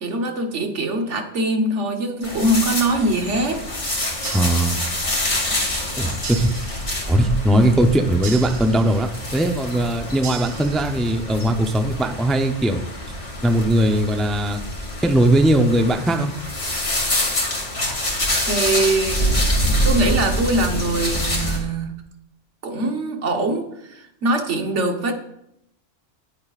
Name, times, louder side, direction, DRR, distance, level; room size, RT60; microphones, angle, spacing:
voice 1, 0.0-3.6 18.5-19.3 19.8-21.9 22.6-25.1, right 2 dB, 75° right, 4 dB, 1.5 m, -22 dB
sound 1, 2.2-21.6, equal, 75° left, 2.9 m, -26 dB
sound 2, 4.2-5.3 6.2-7.3 8.2-9.3 10.2-11.3, right 8 dB, 50° right, 0.6 m, -37 dB
voice 2, 4.3-4.8 6.0-6.5 7.1-12.8 13.4-14.6 15.0-16.3, right 1 dB, ahead, 5 dB, 0.5 m, -19 dB
18.5 x 8.5 x 2.5 m, 0.80 s
omnidirectional pair, 1.2 m